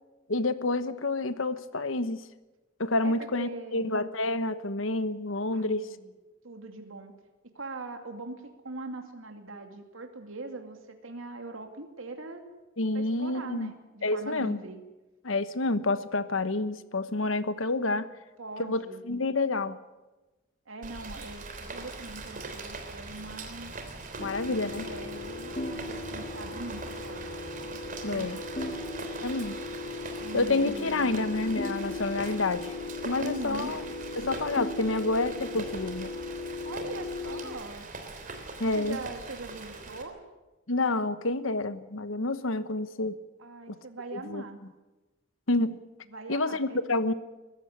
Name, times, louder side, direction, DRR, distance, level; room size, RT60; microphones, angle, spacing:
voice 1, 0.3-2.2 2.8-5.9 12.8-13.7 14.0-14.6 15.2-18.1 18.6-19.8 24.2-24.9 28.0-28.4 29.2-29.6 30.3-32.7 33.0-33.8 34.2-36.1 38.6-39.0 40.7-43.2 43.7-43.8 44.1-44.4 45.5-45.8 46.3-47.1, left 2 dB, 80° left, 13 dB, 1.2 m, -28 dB
voice 2, 3.0-3.9 5.5-6.1 6.4-7.1 7.5-12.4 12.9-14.8 18.4-19.0 20.7-23.7 24.2-27.4 28.1-28.7 30.2-31.2 33.2-33.8 36.6-37.9 38.7-40.2 43.4-44.6 46.1-46.8, right 2 dB, 85° right, 5 dB, 2.5 m, -41 dB
Rain, 20.8-40.0, right 3 dB, 40° right, 3.3 m, -42 dB
sound 1, 24.2-37.4, left 3 dB, 35° left, 2.5 m, -37 dB
22.0 x 15.0 x 9.8 m, 1.1 s
head